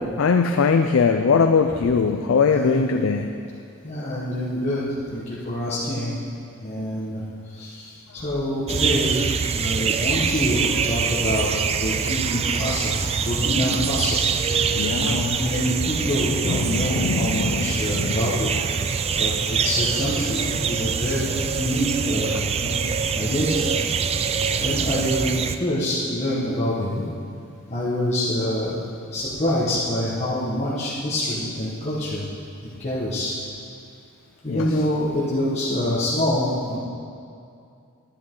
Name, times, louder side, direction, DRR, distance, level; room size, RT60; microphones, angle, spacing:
voice 1, 0.0-3.3 14.7-15.3 16.4-18.2 34.5-34.6, left 5 dB, 70° left, 5 dB, 0.4 m, -21 dB
voice 2, 2.4-3.1 3.8-4.8 5.1-6.2 6.5-9.2 9.5-11.5 11.8-14.2 15.0-18.5 19.1-22.7 23.1-23.8 24.6-27.0 27.7-28.8 29.1-32.2 32.6-33.3 34.4-36.8, left 1 dB, 30° left, -10 dB, 1.4 m, -26 dB
sound 1, 8.7-25.6, right 6 dB, 30° right, 0.3 m, -24 dB
11.5 x 10.5 x 3.8 m, 2.4 s
head